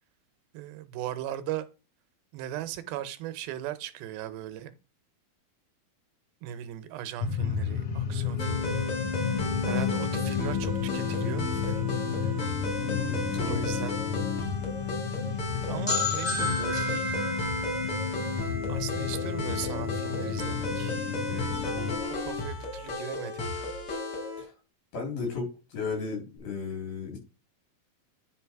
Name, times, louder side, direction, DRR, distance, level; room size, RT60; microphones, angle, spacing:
voice 1, 0.5-1.7 2.3-4.8 6.4-8.9 9.2-9.3 9.6-11.8 12.2-12.4 13.5-14.0 15.7-17.1 18.7-21.5 22.1-23.7, right 12 dB, 85° right, 2.6 m, -38 dB
sound 1, 7.2-22.0, left 7 dB, 60° left, 1.6 m, -32 dB
sound 2, 8.4-24.4, left 2 dB, 45° left, 2.8 m, -33 dB
voice 2, 12.9-13.8 24.4-24.5 24.9-27.2, left 4 dB, 80° left, 5.6 m, -35 dB
sound 3, 15.9-19.5, left 2 dB, 25° left, 0.5 m, -32 dB
10.0 x 4.0 x 4.6 m
omnidirectional pair, 4.2 m